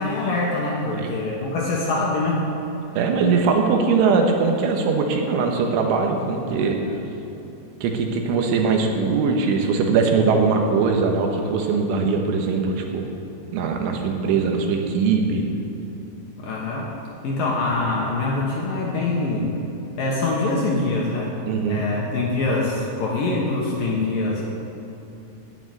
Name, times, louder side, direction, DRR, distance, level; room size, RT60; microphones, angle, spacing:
voice 1, 0.0-2.4 16.4-16.9 17.2-19.6 20.0-21.3 21.7-24.4, left 2 dB, 65° left, -3 dB, 2.4 m, -24 dB
voice 2, 3.0-6.8 7.8-13.1 13.5-15.4 21.4-21.9, right 4 dB, 85° right, 2 dB, 3.6 m, -21 dB
10.0 x 8.9 x 9.4 m, 2.9 s
omnidirectional pair, 5.4 m